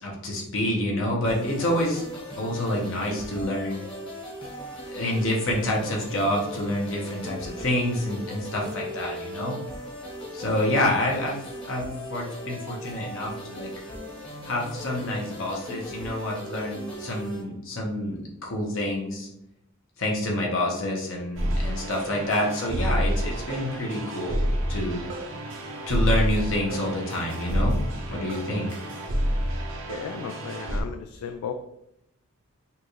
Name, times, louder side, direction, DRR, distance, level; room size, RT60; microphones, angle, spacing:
voice 1, 0.0-2.1 2.4-3.8 4.8-9.5 10.3-11.4 11.6-13.7 14.4-19.3 20.0-24.4 24.7-25.0 25.9-27.8 28.1-28.7, left 1 dB, 60° left, -2 dB, 1.0 m, -28 dB
sound 1, 1.2-17.4, equal, 25° left, 1.1 m, -38 dB
sound 2, 21.4-30.8, equal, 55° right, 0.7 m, -28 dB
voice 2, 29.9-31.5, left 6 dB, 80° left, 6 dB, 0.3 m, -35 dB
5.7 x 2.5 x 3.1 m, 0.81 s
head